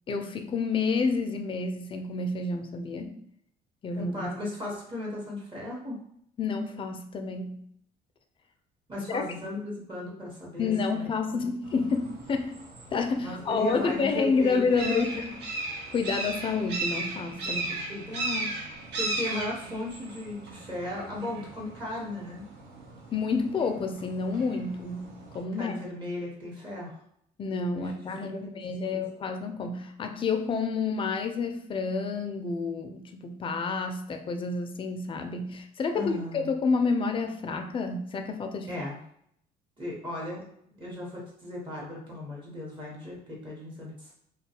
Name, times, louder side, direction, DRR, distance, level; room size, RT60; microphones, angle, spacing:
voice 1, 0.1-3.2 3.8-4.3 6.4-7.6 9.1-9.3 10.6-12.5 12.9-17.6 23.1-25.7 27.4-38.7, left 4 dB, 30° left, 6 dB, 0.4 m, -29 dB
voice 2, 4.0-6.0 8.9-11.5 13.2-15.3 17.5-18.5 19.0-22.5 25.6-27.0 27.7-28.5 28.9-29.0 35.9-36.5 38.7-39.0 39.8-40.4 40.8-44.1, left 1 dB, 30° right, -4 dB, 0.9 m, -36 dB
sound 1, 11.6-25.4, right 2 dB, 80° right, 0.7 m, -37 dB
2.3 x 2.2 x 2.8 m, 0.70 s
cardioid pair, 110°, 17 cm